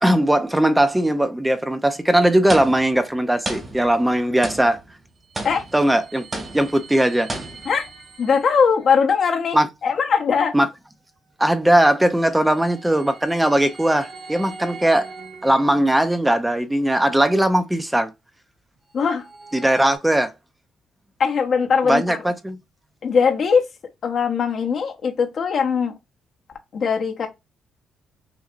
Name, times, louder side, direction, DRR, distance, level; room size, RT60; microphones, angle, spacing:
voice 1, 0.0-4.8 5.7-6.3 6.5-7.3 9.5-9.7 10.5-10.7 11.4-15.1 15.4-18.1 19.5-20.3 21.9-22.6, right 1 dB, 10° right, 0.5 m, -19 dB
sound 1, 2.5-3.1 3.4-4.1 4.4-4.9 5.3-5.9 6.3-6.8 7.3-7.9, right 2 dB, 30° right, 1.6 m, -32 dB
sound 2, 5.2-9.0 11.8-16.2 18.7-20.0, right 4 dB, 75° right, 1.5 m, -42 dB
voice 2, 8.2-9.6 9.8-10.5 18.9-19.3 21.2-22.3 23.0-23.7 24.0-25.9 26.7-27.3, left 6 dB, 55° left, 1.0 m, -20 dB
5.9 x 2.7 x 2.5 m
cardioid pair, 90°, 0 cm